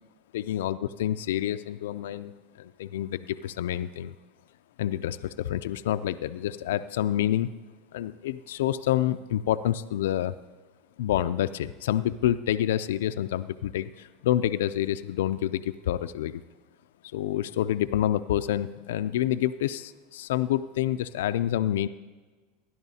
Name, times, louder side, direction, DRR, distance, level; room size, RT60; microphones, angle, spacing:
voice 1, 0.3-4.1 4.8-7.5 7.9-10.4 11.0-16.4 17.1-21.9, left 12 dB, 80° left, 11 dB, 0.3 m, -28 dB
17.0 x 11.0 x 2.8 m, 1.3 s
supercardioid pair, 110°, 0 cm